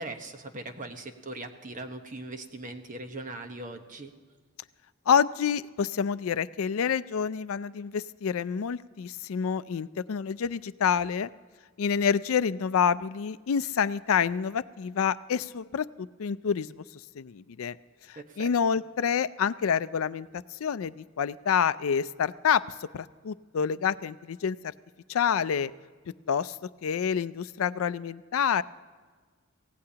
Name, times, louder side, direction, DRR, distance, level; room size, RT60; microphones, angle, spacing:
voice 1, 0.0-4.1 18.2-18.5, right 2 dB, 40° right, 5 dB, 1.2 m, -40 dB
voice 2, 5.1-11.3 11.8-16.8 17.1-17.8 18.1-24.7 25.1-25.7 26.3-26.6 26.8-28.6, left 7 dB, 75° left, 16 dB, 0.4 m, -28 dB
24.5 x 17.0 x 2.9 m, 1.5 s
head